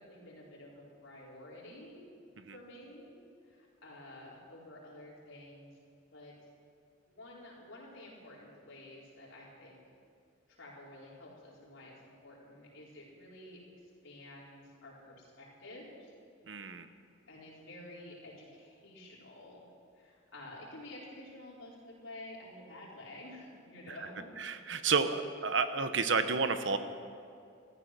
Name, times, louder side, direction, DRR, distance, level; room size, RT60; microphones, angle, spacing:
voice 1, 0.0-2.0 2.5-3.1 3.5-5.7 6.1-6.3 7.1-9.8 10.5-13.6 14.0-16.1 17.3-19.6 19.9-24.3, left 1 dB, 80° left, -5 dB, 4.5 m, -50 dB
voice 2, 16.5-16.9 24.4-26.8, right 5 dB, 65° right, 10 dB, 0.9 m, -30 dB
14.5 x 14.0 x 6.1 m, 2.4 s
head